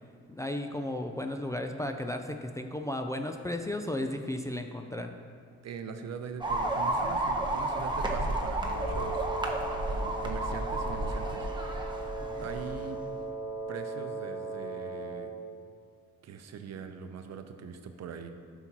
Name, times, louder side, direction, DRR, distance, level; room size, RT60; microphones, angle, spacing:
voice 1, 0.3-5.1 12.2-12.5, left 1 dB, 10° left, 4 dB, 0.4 m, -34 dB
voice 2, 5.6-9.2 9.9-11.5 12.4-13.0 13.7-15.3 16.2-18.3, right 6 dB, 60° right, 7 dB, 0.7 m, -42 dB
sound 1, 6.4-12.8, right 2 dB, 15° right, 0.9 m, -32 dB
Wind instrument woodwind instrument, 8.6-15.4, right 3 dB, 65° left, 1.5 m, -38 dB
12.0 x 5.9 x 2.9 m, 2.1 s
cardioid pair, 90°, 30 cm